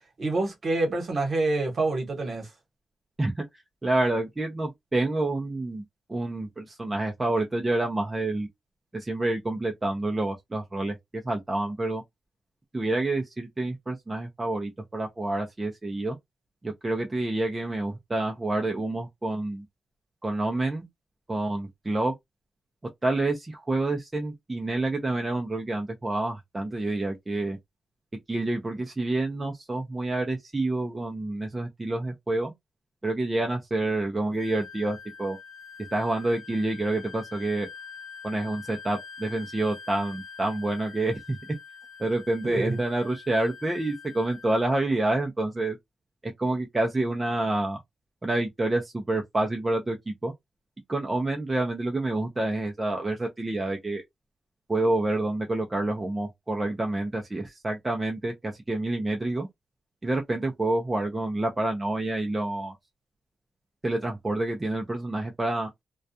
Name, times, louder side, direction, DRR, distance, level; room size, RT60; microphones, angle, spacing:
voice 1, 0.2-2.5 42.4-42.8, right 2 dB, 45° right, 1.1 m, -27 dB
voice 2, 3.8-5.8 6.1-8.5 8.9-12.0 12.7-16.2 16.6-19.6 20.2-20.8 21.3-22.1 23.0-27.6 28.3-32.5 33.0-35.4 35.9-37.7 38.2-41.4 42.0-45.8 46.4-47.8 48.2-50.3 50.9-54.0 54.7-59.5 60.0-62.7 63.8-65.7, right 2 dB, 20° right, 0.5 m, -28 dB
Wind instrument woodwind instrument, 34.4-44.7, left 6 dB, 30° left, 0.8 m, -45 dB
2.3 x 2.2 x 2.6 m
wide cardioid pair, 135°, 0 cm